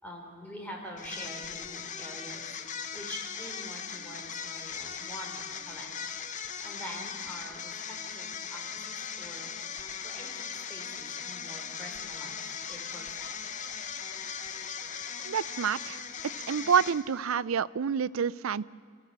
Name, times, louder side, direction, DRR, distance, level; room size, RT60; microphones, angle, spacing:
voice 1, 0.0-5.9 6.4-9.5 10.0-12.4 12.7-13.3, equal, 5° left, 0 dB, 3.7 m, -45 dB
sound 1, 1.0-17.3, left 7 dB, 35° left, 0.8 m, -39 dB
voice 2, 15.2-16.0 16.5-18.7, right 7 dB, 85° right, 19 dB, 0.5 m, -28 dB
25.0 x 15.0 x 7.9 m, 2.1 s
head